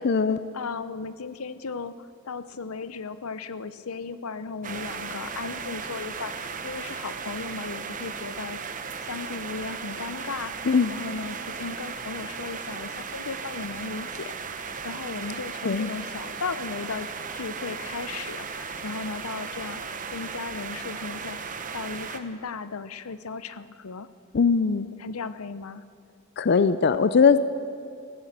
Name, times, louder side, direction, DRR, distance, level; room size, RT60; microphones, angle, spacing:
voice 1, 0.0-0.4 10.6-10.9 15.6-15.9 24.3-24.9 26.4-27.4, left 5 dB, 50° left, 13 dB, 0.5 m, -20 dB
voice 2, 0.5-8.6 9.1-17.1 17.3-19.9 20.1-24.1 24.9-25.8, left 4 dB, 85° left, 13 dB, 0.7 m, -36 dB
sound 1, 4.6-22.2, right 5 dB, 40° right, 0.9 m, -36 dB
15.0 x 12.5 x 7.7 m, 2.3 s
head